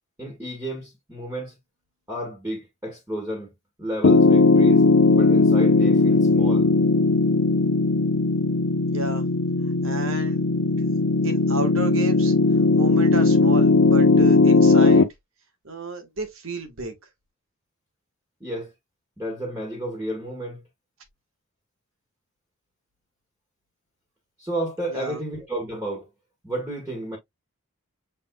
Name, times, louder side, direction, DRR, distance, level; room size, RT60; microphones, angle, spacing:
voice 1, 0.2-1.6 2.1-3.5 3.8-4.9 5.1-6.7 18.4-18.7 19.2-20.6 24.4-26.1 26.4-27.2, right 1 dB, 10° right, 1.5 m, -31 dB
Piano, 4.0-15.0, left 3 dB, 65° left, 0.7 m, -18 dB
voice 2, 8.9-9.3 9.8-10.4 10.8-10.9 11.2-12.3 12.7-15.1 15.6-16.9 24.9-25.2, right 2 dB, 65° right, 1.4 m, -32 dB
6.7 x 3.5 x 2.2 m
head